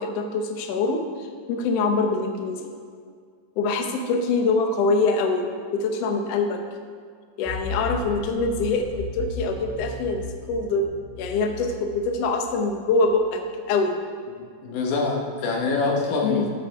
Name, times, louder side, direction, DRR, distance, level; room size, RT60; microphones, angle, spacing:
voice 1, 0.0-2.7 3.6-6.6 7.4-13.4 13.7-14.0 16.2-16.5, left 3 dB, 65° left, 4 dB, 1.7 m, -24 dB
sound 1, 7.4-13.2, left 3 dB, 10° left, 2.4 m, -36 dB
voice 2, 14.6-16.5, left 3 dB, 85° left, -1 dB, 2.8 m, -25 dB
15.0 x 7.7 x 3.5 m, 2.1 s
omnidirectional pair, 3.5 m